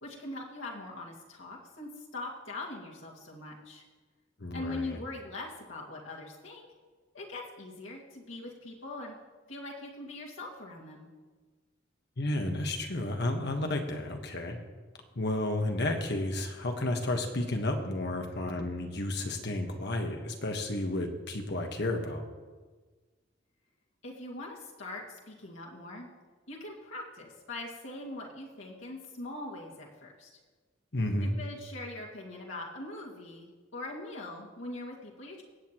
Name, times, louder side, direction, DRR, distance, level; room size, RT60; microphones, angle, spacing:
voice 1, 0.0-3.8 4.5-6.7 7.1-9.2 9.5-11.1 24.0-26.1 26.5-30.3 31.2-35.4, left 2 dB, 90° left, -3 dB, 2.1 m, -42 dB
voice 2, 4.4-5.0 12.2-14.6 15.1-22.3 30.9-31.3, left 1 dB, 60° left, 4 dB, 1.3 m, -32 dB
24.0 x 8.2 x 3.0 m, 1.4 s
head